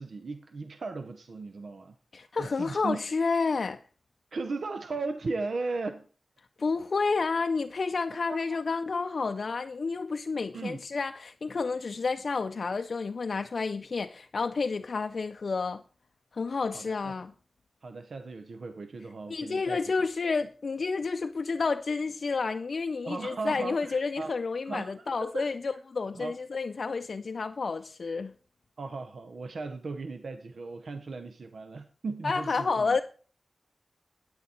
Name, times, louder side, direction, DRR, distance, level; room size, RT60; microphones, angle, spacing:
voice 1, 0.0-2.0 2.2-3.0 4.3-6.1 8.3-8.6 10.5-10.8 16.7-17.1 17.8-19.8 21.2-21.3 23.0-24.3 24.6-25.8 26.1-26.3 28.8-33.0, right 3 dB, 85° right, 0.6 m, -37 dB
voice 2, 2.1-3.8 6.6-15.8 16.3-17.3 19.3-28.3 32.2-33.0, left 4 dB, 70° left, 0.4 m, -30 dB
9.4 x 9.3 x 4.2 m
wide cardioid pair, 105°, 0 cm